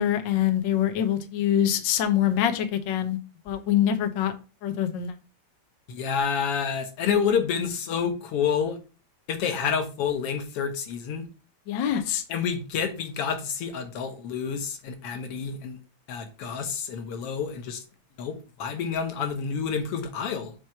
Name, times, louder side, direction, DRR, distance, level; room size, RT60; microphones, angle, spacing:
voice 1, 0.0-3.2 3.4-4.3 4.6-5.1 11.7-12.2, left 10 dB, 90° left, 1.0 m, -24 dB
voice 2, 5.9-8.8 9.3-11.2 12.3-15.8 16.1-17.8 18.2-20.5, left 6 dB, 60° left, 1.8 m, -28 dB
7.7 x 3.2 x 5.8 m
omnidirectional pair, 3.3 m